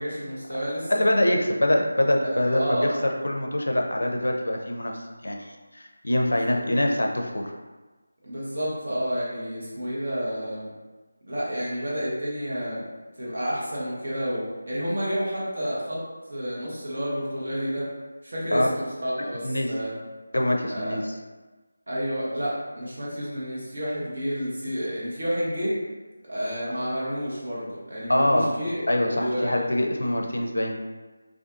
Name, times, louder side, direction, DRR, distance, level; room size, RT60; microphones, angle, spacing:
voice 1, 0.0-1.0 2.2-2.9 8.2-10.7 11.2-12.8 13.2-16.0 16.3-17.9 18.2-19.9 20.7-21.0 21.9-25.8 26.3-29.6, equal, 65° right, -7 dB, 1.1 m, -30 dB
voice 2, 0.9-2.9 3.2-7.5 18.5-18.7 19.4-19.7 20.3-21.1 28.1-28.5 28.9-30.7, left 1 dB, 85° left, 1 dB, 0.4 m, -24 dB
2.4 x 2.4 x 2.4 m, 1.2 s
figure-of-eight pair, 170°, 0 cm